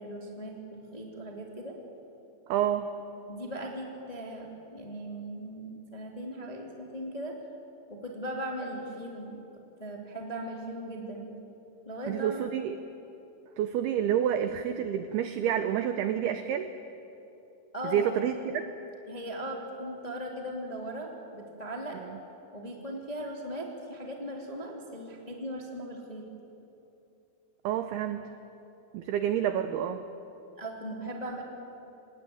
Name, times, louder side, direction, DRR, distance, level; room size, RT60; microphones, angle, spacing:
voice 1, 0.0-1.8 3.3-7.3 7.9-9.4 9.8-11.3 11.8-12.5 17.7-18.1 19.1-22.0 22.5-26.2 30.6-31.4, right 1 dB, 20° left, 0 dB, 1.0 m, -38 dB
voice 2, 2.5-2.9 12.1-12.8 13.6-16.7 17.9-18.6 22.0-22.1 27.6-28.3 28.9-30.1, right 9 dB, 90° right, 9 dB, 2.2 m, -29 dB
26.5 x 18.5 x 9.3 m, 2.9 s
omnidirectional pair, 5.6 m